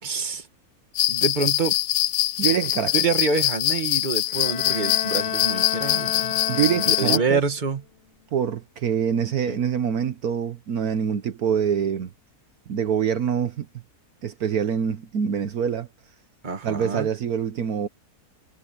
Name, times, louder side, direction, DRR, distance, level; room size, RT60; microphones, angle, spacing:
voice 1, 0.0-0.5 1.1-1.8 2.9-6.4 6.9-7.8 9.5-9.6 16.4-17.1, right 4 dB, 30° right, 1.7 m, -26 dB
sound 1, 1.0-7.2, left 14 dB, 90° left, 1.2 m, -24 dB
voice 2, 2.4-2.9 6.5-7.4 8.3-12.1 12.7-13.7 14.2-15.9 16.6-17.9, right 8 dB, 70° right, 1.4 m, -25 dB
Bowed string instrument, 4.3-7.7, left 9 dB, 55° left, 0.7 m, -31 dB
omnidirectional pair, 1.7 m